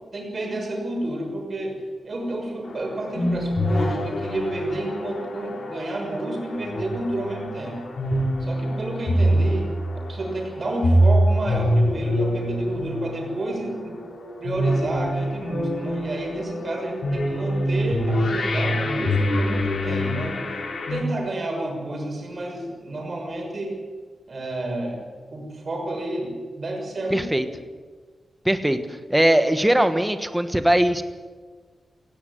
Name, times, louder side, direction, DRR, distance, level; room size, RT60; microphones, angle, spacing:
voice 1, 0.1-7.8 8.4-14.0 14.4-20.4 20.9-23.8 24.3-25.0 25.3-27.5, right 1 dB, 45° right, 1 dB, 6.4 m, -30 dB
sound 1, 2.7-21.0, equal, 60° left, 3.3 m, -25 dB
voice 2, 27.1-27.4 28.4-31.0, right 1 dB, 5° right, 9 dB, 1.3 m, -20 dB
17.0 x 16.5 x 9.3 m, 1.5 s
wide cardioid pair, 130°, 0 cm